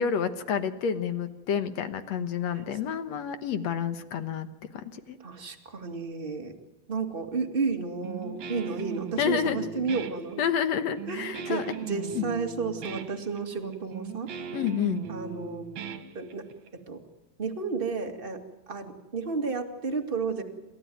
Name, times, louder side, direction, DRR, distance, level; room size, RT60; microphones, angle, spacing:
voice 1, 0.0-4.5 4.7-5.2 9.2-9.7 10.4-11.7 12.2-12.3 14.5-15.1, left 7 dB, 65° left, 10 dB, 1.8 m, -29 dB
voice 2, 5.2-6.5 6.9-10.4 11.1-14.3 15.1-15.6 16.1-16.5 16.7-17.0 17.4-20.4, right 4 dB, 20° right, 4 dB, 1.5 m, -32 dB
Guitar, 8.0-16.7, right 7 dB, 55° right, 2.6 m, -38 dB
28.0 x 15.0 x 9.3 m, 1.1 s
omnidirectional pair, 4.5 m